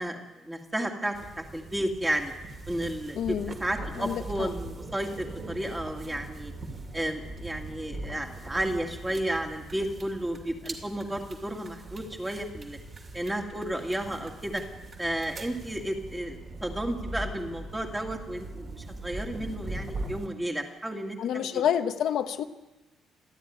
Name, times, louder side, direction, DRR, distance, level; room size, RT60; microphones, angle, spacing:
voice 1, 0.0-2.3 2.7-6.5 6.9-12.8 13.1-14.6 15.0-21.6, right 1 dB, 10° right, 3 dB, 2.2 m, -32 dB
sound 1, 1.1-20.3, right 2 dB, 25° right, 2.5 m, -41 dB
voice 2, 3.2-3.5 4.0-4.5 21.2-22.4, left 9 dB, 55° left, 7 dB, 1.0 m, -28 dB
28.0 x 12.5 x 9.6 m, 1.1 s
cardioid pair, 175°, 0 cm